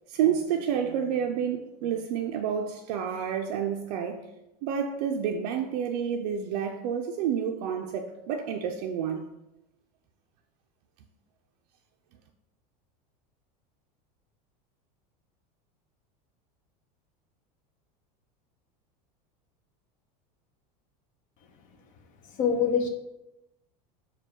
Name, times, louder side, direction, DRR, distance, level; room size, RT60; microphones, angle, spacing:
voice 1, 0.1-4.2 4.6-9.3, right 8 dB, 80° right, 0.4 m, -29 dB
voice 2, 22.3-22.9, left 6 dB, 40° left, 0.5 m, -24 dB
4.4 x 2.2 x 4.4 m
supercardioid pair, 140°, 20 cm